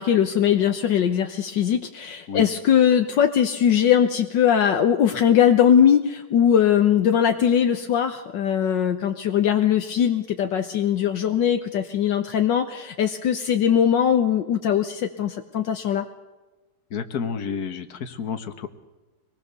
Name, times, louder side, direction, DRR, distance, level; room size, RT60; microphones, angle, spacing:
voice 1, 0.0-16.1, left 9 dB, 70° left, 6 dB, 1.6 m, -20 dB
voice 2, 16.9-18.7, left 6 dB, 55° left, 8 dB, 1.8 m, -30 dB
25.0 x 20.0 x 6.9 m, 1.2 s
omnidirectional pair, 2.1 m